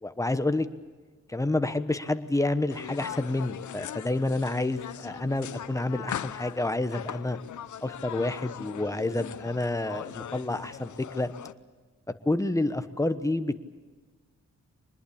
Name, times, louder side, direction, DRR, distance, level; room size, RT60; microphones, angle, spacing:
voice 1, 0.0-0.7 1.3-7.4 7.8-11.3 12.2-13.6, left 2 dB, 10° left, 9 dB, 1.1 m, -29 dB
sound 1, 2.7-11.5, left 10 dB, 85° left, 0.8 m, -40 dB
24.0 x 20.5 x 8.6 m, 1.4 s
wide cardioid pair, 125°, 29 cm